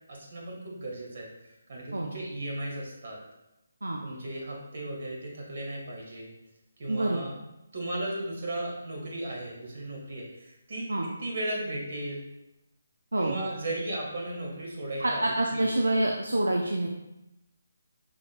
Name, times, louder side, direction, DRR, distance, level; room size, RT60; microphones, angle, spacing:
voice 1, 0.1-3.2 4.0-6.3 6.8-7.3 7.7-12.2 13.2-15.6, right 1 dB, 55° right, -2 dB, 1.6 m, -36 dB
voice 2, 6.9-7.2 10.9-11.1 13.1-13.4 15.0-16.9, right 1 dB, 85° right, 0 dB, 0.5 m, -27 dB
5.7 x 3.7 x 2.2 m, 0.92 s
figure-of-eight pair, 150°, 0 cm